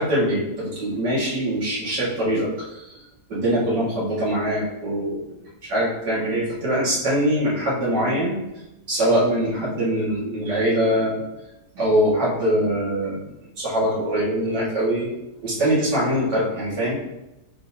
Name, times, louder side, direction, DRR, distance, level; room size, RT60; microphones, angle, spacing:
voice 1, 0.0-2.5 2.8-2.9 3.3-5.3 5.7-8.4 8.9-11.2 11.7-13.2 13.6-15.1 15.4-17.0, equal, 80° right, -6 dB, 2.8 m, -23 dB
11.5 x 3.9 x 2.9 m, 0.95 s
omnidirectional pair, 1.8 m